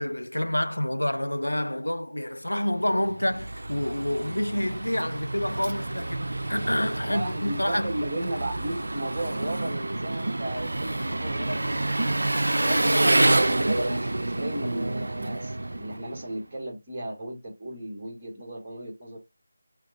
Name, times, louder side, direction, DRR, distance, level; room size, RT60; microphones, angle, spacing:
voice 1, 0.0-7.9, left 1 dB, 85° left, 0.4 m, -28 dB
Engine, 2.8-16.4, right 2 dB, 70° right, 0.3 m, -28 dB
voice 2, 7.0-12.8 13.2-19.2, right 1 dB, 20° right, 1.5 m, -35 dB
4.9 x 2.9 x 2.9 m
figure-of-eight pair, 160°, 0 cm